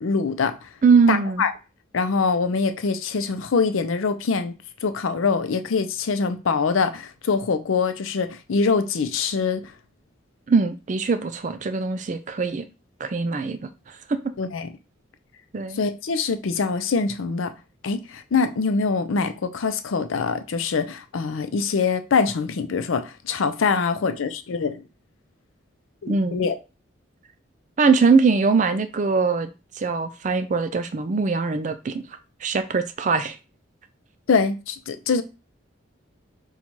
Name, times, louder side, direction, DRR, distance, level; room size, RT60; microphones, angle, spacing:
voice 1, 0.0-0.7 1.1-1.5 1.9-4.5 4.8-9.7 14.4-14.7 15.7-17.5 17.8-24.8 26.0-26.6 34.3-35.2, left 5 dB, 85° left, 0.5 m, -24 dB
voice 2, 0.8-1.4 10.5-12.6 13.0-14.2 15.5-15.8 26.1-26.4 27.8-32.0 32.4-33.4, right 4 dB, 40° right, 0.4 m, -22 dB
4.1 x 2.3 x 4.5 m
head